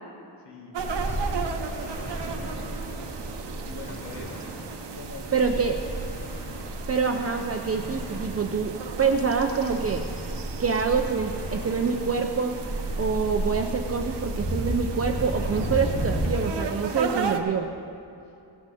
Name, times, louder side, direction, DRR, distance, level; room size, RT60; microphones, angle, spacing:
voice 1, 0.4-4.5 4.9-6.0, left 3 dB, 80° left, 0 dB, 1.9 m, -45 dB
sound 1, 0.7-17.4, right 5 dB, 85° right, 0.9 m, -36 dB
Ocean, 0.8-16.3, right 1 dB, 15° left, 2.0 m, -33 dB
voice 2, 5.3-5.8 6.9-10.0 10.6-12.7 13.0-17.7, right 5 dB, 35° right, 3 dB, 0.5 m, -26 dB
16.5 x 9.7 x 4.2 m, 2.7 s
wide cardioid pair, 150°, 41 cm